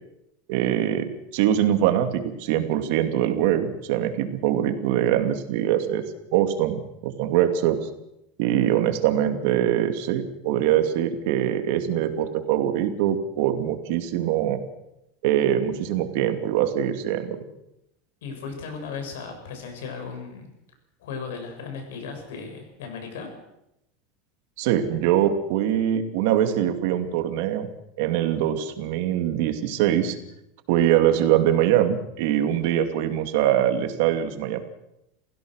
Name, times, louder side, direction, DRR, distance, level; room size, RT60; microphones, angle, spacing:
voice 1, 0.5-6.0 6.3-7.8 8.4-14.6 15.2-17.4 24.6-27.7 28.0-30.2 30.7-34.6, right 11 dB, 60° right, 7 dB, 2.6 m, -23 dB
voice 2, 18.2-20.5 21.0-23.3, left 5 dB, 90° left, 5 dB, 7.5 m, -36 dB
29.5 x 16.0 x 6.5 m, 0.86 s
supercardioid pair, 160°, 0 cm